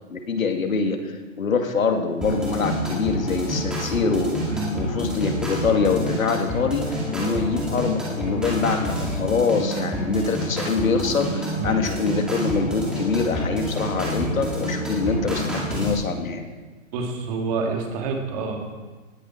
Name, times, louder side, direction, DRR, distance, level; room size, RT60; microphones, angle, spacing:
voice 1, 0.1-4.4 4.7-16.4, left 4 dB, 90° left, 5 dB, 2.2 m, -24 dB
sound 1, 2.2-15.9, equal, ahead, 2.2 m, -28 dB
voice 2, 16.9-18.6, right 4 dB, 30° right, 2 dB, 2.2 m, -28 dB
18.5 x 11.0 x 4.4 m, 1.3 s
hypercardioid pair, 160°, 40 cm